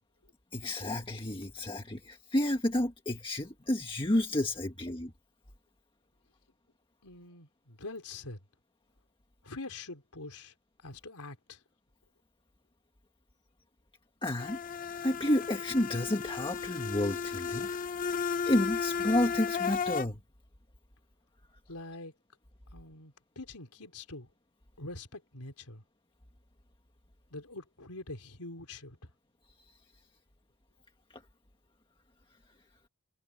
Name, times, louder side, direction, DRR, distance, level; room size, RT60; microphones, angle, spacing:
voice 1, 0.5-5.1 14.2-14.6 15.0-17.7 18.4-20.2 31.1-31.2, left 1 dB, 25° left, 1.6 m, -30 dB
voice 2, 7.0-8.4 9.4-10.5 10.8-11.6 21.7-22.1 22.7-24.3 24.8-25.8 27.3-29.1, left 2 dB, 90° left, 4.0 m, -44 dB
sound 1, 14.4-20.1, left 6 dB, 40° left, 0.6 m, -34 dB
head